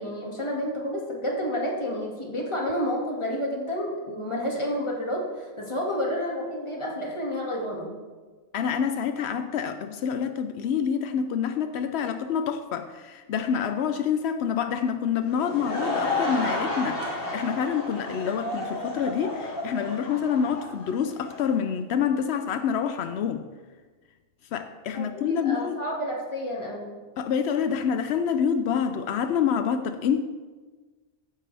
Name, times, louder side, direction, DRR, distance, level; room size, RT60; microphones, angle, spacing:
voice 1, 0.0-7.9 24.9-26.9, equal, 30° left, 2.1 m, -30 dB
voice 2, 8.5-23.5 24.5-25.8 27.2-30.2, left 7 dB, 85° left, 0.9 m, -27 dB
Laughter / Crowd, 15.2-21.5, left 2 dB, 65° left, 2.1 m, -31 dB
14.5 x 9.5 x 3.4 m
omnidirectional pair, 1.1 m